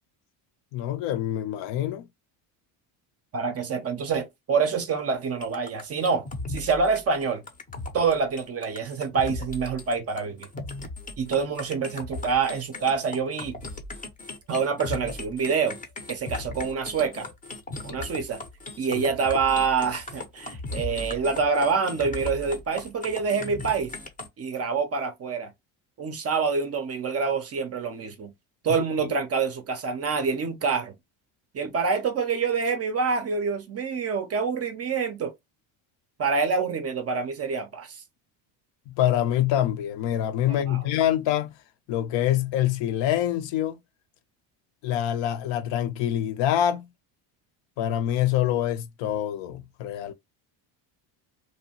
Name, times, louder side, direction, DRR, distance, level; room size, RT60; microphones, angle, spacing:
voice 1, 0.7-2.0 18.9-19.0 29.0-29.1 38.9-41.5 41.9-43.8 44.8-46.9 47.8-50.1, left 11 dB, 65° left, 0.6 m, -25 dB
voice 2, 3.3-7.4 7.9-10.5 11.2-13.6 14.5-15.8 16.1-17.3 17.8-18.4 18.8-23.9 24.4-25.5 26.0-28.3 28.6-30.9 31.5-35.3 36.2-38.0 40.4-40.8, right 5 dB, 30° right, 0.5 m, -26 dB
sound 1, 5.4-24.3, left 2 dB, 15° left, 0.5 m, -37 dB
2.7 x 2.2 x 2.8 m
cardioid pair, 115°, 49 cm